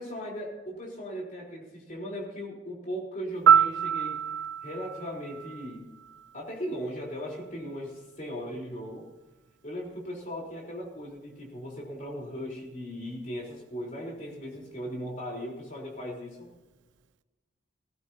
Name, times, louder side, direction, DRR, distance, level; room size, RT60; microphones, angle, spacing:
voice 1, 0.0-4.2 4.6-5.8 6.3-9.1 9.6-16.5, equal, 40° left, -2 dB, 3.9 m, -38 dB
Piano, 3.5-6.4 14.5-14.7, right 8 dB, 75° right, 0.4 m, -25 dB
18.5 x 15.5 x 2.8 m, 1.2 s
head